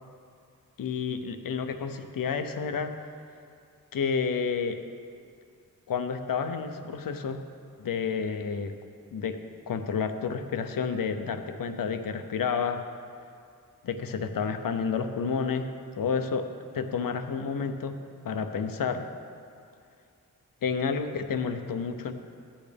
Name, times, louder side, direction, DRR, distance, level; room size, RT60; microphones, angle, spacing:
voice 1, 0.8-2.9 3.9-4.8 5.9-7.4 7.8-8.7 9.1-9.4 9.7-12.8 13.8-15.7 16.0-16.5 16.7-18.0 18.2-19.1 20.6-22.1, left 6 dB, 75° left, 8 dB, 0.7 m, -30 dB
14.5 x 8.7 x 3.4 m, 2.4 s
wide cardioid pair, 110°, 34 cm